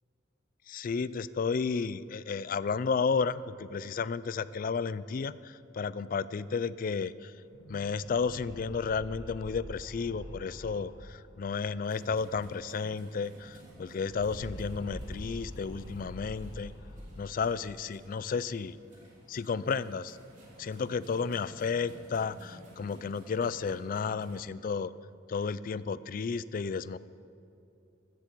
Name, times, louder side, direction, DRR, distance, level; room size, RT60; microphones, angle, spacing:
voice 1, 0.7-7.3 7.7-16.7 17.2-18.8 19.3-20.2 20.6-24.9 25.3-27.0, left 5 dB, 45° left, 17 dB, 0.3 m, -32 dB
sound 1, 7.4-12.7 13.0-13.1 13.3-17.7, left 1 dB, 85° left, 1.2 m, -46 dB
sound 2, 11.8-24.4, equal, 40° right, 3.1 m, -55 dB
15.0 x 13.5 x 4.6 m, 2.7 s
head